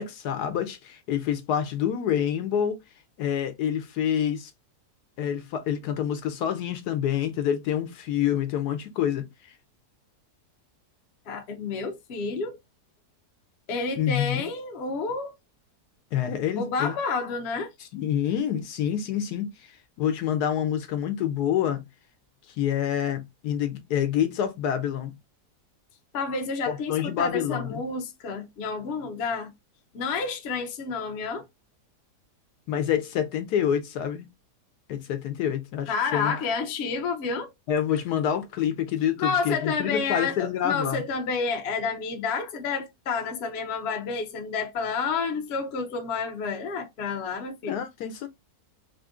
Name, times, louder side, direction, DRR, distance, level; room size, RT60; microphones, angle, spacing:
voice 1, 0.0-2.8 3.2-4.5 5.2-9.3 14.0-14.4 16.1-16.9 17.9-19.5 20.0-21.8 22.6-25.1 26.9-27.8 32.7-34.3 34.9-36.3 37.7-41.0 47.7-48.3, left 9 dB, 75° left, 1.2 m, -27 dB
voice 2, 11.3-12.6 13.7-15.3 16.5-17.7 26.1-29.5 29.9-31.5 35.9-37.5 39.2-47.8, left 4 dB, 50° left, 0.9 m, -30 dB
3.5 x 2.5 x 3.5 m
omnidirectional pair, 1.8 m